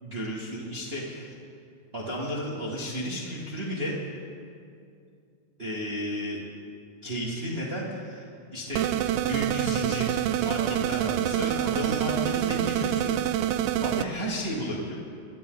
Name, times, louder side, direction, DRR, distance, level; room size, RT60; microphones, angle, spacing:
voice 1, 0.0-1.3 1.9-4.0 5.6-6.4 7.0-8.9 9.3-13.1 13.8-14.9, equal, 45° right, -4 dB, 0.7 m, -33 dB
sound 1, 8.7-14.0, right 11 dB, 85° right, 2.7 m, -26 dB
26.5 x 13.0 x 3.9 m, 2.4 s
omnidirectional pair, 4.9 m